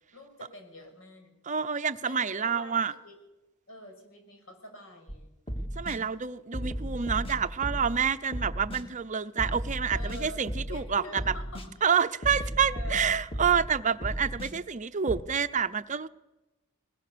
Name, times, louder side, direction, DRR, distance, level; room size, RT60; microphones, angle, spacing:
voice 1, 0.1-1.3 2.0-3.2 3.7-5.3 9.9-11.8 12.3-13.1, left 1 dB, 75° left, 6.5 m, -47 dB
voice 2, 1.4-2.9 5.8-11.3 11.8-16.1, right 7 dB, 35° right, 0.7 m, -28 dB
sound 1, 5.1-5.2 5.5-6.0 6.5-8.0 8.3-8.8 9.4-10.8 11.2-11.7 12.2-13.7 14.0-14.5 15.1-15.2, equal, 25° left, 2.2 m, -34 dB
21.5 x 20.5 x 6.8 m
head